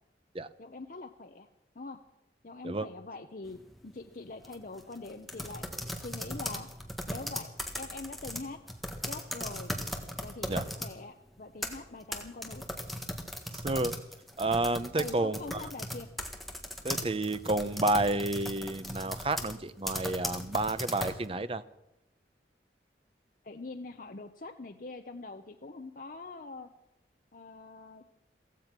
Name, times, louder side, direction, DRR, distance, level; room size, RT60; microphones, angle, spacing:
voice 1, 0.6-1.5 1.8-2.0 2.4-8.6 9.1-9.7 10.2-12.6 15.0-16.1 23.4-26.7 27.3-28.0, left 3 dB, 50° left, 6 dB, 0.8 m, -44 dB
sound 1, 3.4-3.8 4.4-10.9 11.4-21.2, equal, ahead, 1.6 m, -38 dB
voice 2, 13.5-13.9 14.4-15.6 16.8-21.6, right 2 dB, 30° right, 13 dB, 0.7 m, -30 dB
16.0 x 15.0 x 6.0 m, 0.88 s
head